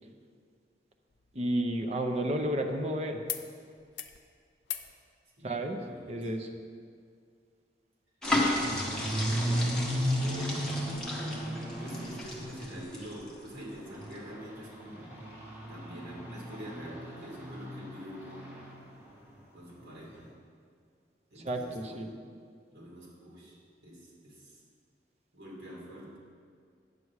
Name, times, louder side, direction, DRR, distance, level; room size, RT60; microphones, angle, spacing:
sound 1, 1.1-2.9 3.3-3.5 3.8-4.2 4.6-4.9 6.3-6.4, left 12 dB, 85° left, 0.5 m, -42 dB
voice 1, 1.3-3.2 5.4-5.8 6.1-6.5 21.4-22.1, right 1 dB, 35° right, 4 dB, 0.7 m, -31 dB
voice 2, 5.4-6.5 8.5-9.7 10.2-10.8 11.8-15.1 15.7-18.6 19.5-20.3 21.3-22.2 22.7-23.5 23.8-24.6 25.3-26.2, equal, 80° right, -4 dB, 2.5 m, -46 dB
sound 2, 8.2-13.6 14.0-14.2, left 1 dB, 5° left, 1.2 m, -34 dB
sound 3, 8.6-13.1 13.5-18.8 19.0-19.3 19.7-19.8 20.1-20.2, equal, 15° right, 2.0 m, -35 dB
9.5 x 6.9 x 4.8 m, 2.1 s
head